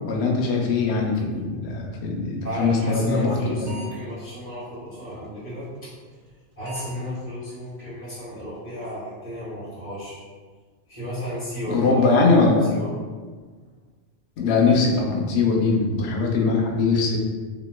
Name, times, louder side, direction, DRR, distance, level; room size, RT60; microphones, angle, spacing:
voice 1, 0.0-3.7 11.7-12.7 14.4-17.2, left 4 dB, 70° left, 0 dB, 0.8 m, -21 dB
voice 2, 2.4-6.3 6.6-10.2 10.9-12.9, equal, 45° left, -11 dB, 1.2 m, -33 dB
sound 1, 3.7-4.1 4.6-4.7 6.1-6.3 6.6-6.8 7.1-7.2 7.7-7.8 8.2-8.3 8.5-8.9, right 4 dB, 90° right, 1.1 m, -41 dB
3.0 x 2.9 x 2.2 m, 1.5 s
omnidirectional pair, 1.2 m